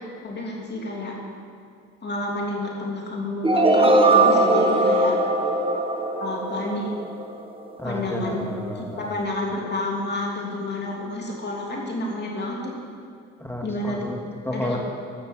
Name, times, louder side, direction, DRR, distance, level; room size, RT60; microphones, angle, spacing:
voice 1, 0.2-1.2 2.0-5.2 6.2-6.9 7.8-8.5 8.7-12.7 13.6-14.1 14.5-14.8, left 2 dB, 35° left, -2 dB, 3.1 m, -29 dB
sound 1, 3.4-7.4, right 2 dB, 20° right, 1.4 m, -20 dB
voice 2, 7.8-9.1 13.4-14.8, left 1 dB, 10° left, 1 dB, 2.0 m, -31 dB
14.0 x 6.8 x 7.6 m, 2.2 s
cardioid pair, 90°, 30 cm